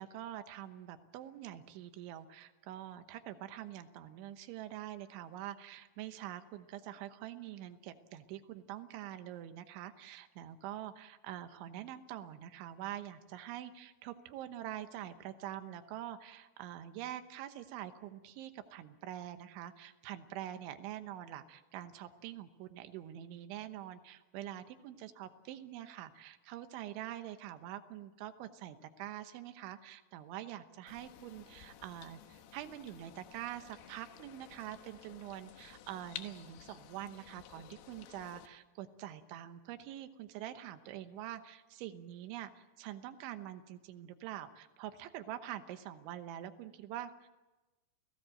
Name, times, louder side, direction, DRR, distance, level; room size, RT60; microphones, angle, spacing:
voice 1, 0.0-47.3, right 12 dB, 85° right, 9 dB, 3.5 m, -45 dB
sound 1, 30.9-38.5, left 11 dB, 70° left, 2.9 m, -53 dB
29.0 x 17.5 x 7.7 m, 1.1 s
omnidirectional pair, 5.3 m